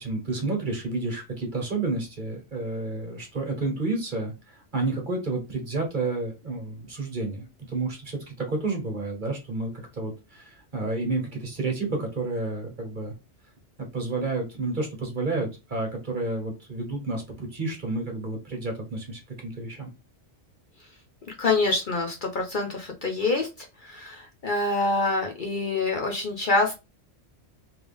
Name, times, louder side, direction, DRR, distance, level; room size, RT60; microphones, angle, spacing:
voice 1, 0.0-13.1 13.8-19.9, right 3 dB, 40° right, 2 dB, 1.4 m, -30 dB
voice 2, 21.4-23.5 23.8-26.7, left 3 dB, 50° left, 2 dB, 0.8 m, -26 dB
3.4 x 3.3 x 3.5 m, 0.26 s
omnidirectional pair, 1.2 m